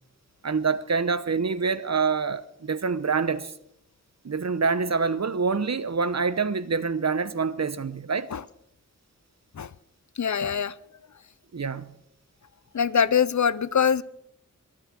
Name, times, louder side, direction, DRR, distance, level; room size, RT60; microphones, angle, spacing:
voice 1, 0.4-3.5 4.2-8.3 11.5-11.9, right 5 dB, 55° right, 0.9 m, -26 dB
voice 2, 10.2-10.7 12.7-14.0, left 7 dB, 65° left, 0.6 m, -23 dB
22.0 x 8.9 x 6.2 m
wide cardioid pair, 70°, 32 cm